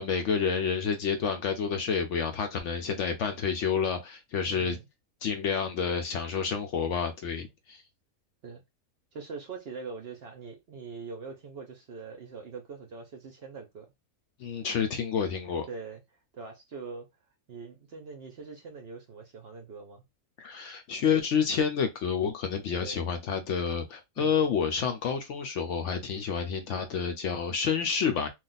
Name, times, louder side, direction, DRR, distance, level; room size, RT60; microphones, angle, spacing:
voice 1, 0.0-4.8 5.2-7.8 14.4-15.7 20.4-28.3, left 6 dB, 65° left, 0.8 m, -29 dB
voice 2, 4.5-4.9 8.4-8.6 9.1-13.9 15.7-16.0 16.3-17.1 17.5-20.0 22.7-23.0 24.2-24.4, right 4 dB, 55° right, 0.7 m, -42 dB
2.5 x 2.3 x 3.8 m
omnidirectional pair, 1.5 m